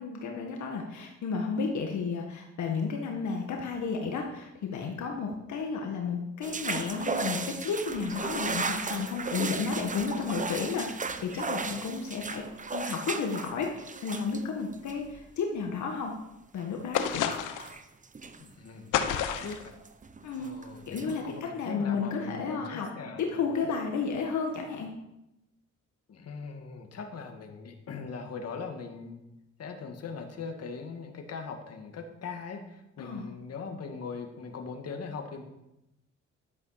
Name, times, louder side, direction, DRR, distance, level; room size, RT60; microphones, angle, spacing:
voice 1, 0.0-12.4 12.7-16.1 16.5-17.1 20.2-20.5 20.9-22.9 23.2-24.9 33.0-33.3, left 5 dB, 70° left, 1 dB, 1.8 m, -32 dB
sound 1, 6.4-15.2 16.6-16.7 16.9-18.5 19.1-20.7 21.0-21.3, right 4 dB, 25° right, 1.0 m, -36 dB
sound 2, 16.9-17.8 18.9-19.7, left 9 dB, 90° left, 1.1 m, -29 dB
voice 2, 18.4-19.7 20.4-23.7 26.1-29.2 29.6-35.4, left 5 dB, 55° left, 4 dB, 2.0 m, -41 dB
11.5 x 7.9 x 5.9 m, 0.89 s
cardioid pair, 90°, 30 cm